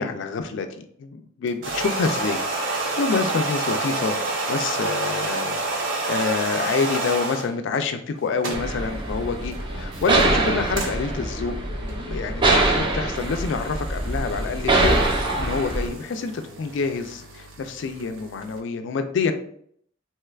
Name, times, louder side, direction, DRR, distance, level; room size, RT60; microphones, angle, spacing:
voice 1, 0.0-2.5 2.9-4.2 4.5-5.6 6.1-15.0 15.4-19.3, left 4 dB, 65° left, 7 dB, 0.3 m, -27 dB
sound 1, 1.5-7.5 8.2-18.6, right 2 dB, 75° right, 0.7 m, -30 dB
sound 2, 8.5-15.9, right 2 dB, 25° right, 0.5 m, -24 dB
3.0 x 2.3 x 3.2 m, 0.64 s
head